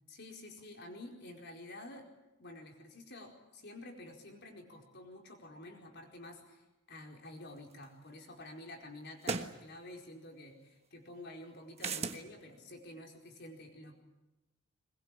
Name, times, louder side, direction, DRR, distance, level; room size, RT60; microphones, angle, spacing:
voice 1, 0.1-2.1 2.4-13.9, left 1 dB, 55° left, 2 dB, 4.6 m, -50 dB
sound 1, 7.8-7.9 9.2-9.6 11.8-12.2, right 4 dB, 30° right, 1.3 m, -35 dB
22.0 x 21.5 x 9.1 m, 1.1 s
head